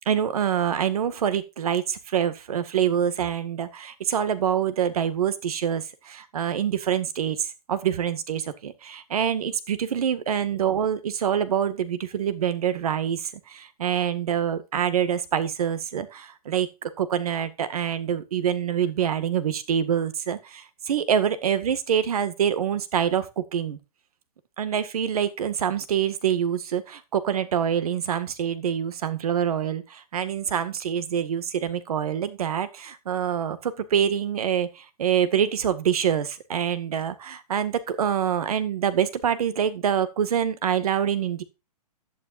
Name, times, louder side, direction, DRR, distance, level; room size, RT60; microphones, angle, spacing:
voice 1, 0.1-23.8 24.6-41.4, right 8 dB, 65° right, 13 dB, 1.9 m, -26 dB
12.0 x 10.5 x 2.6 m, 0.27 s
hypercardioid pair, 160°, 20 cm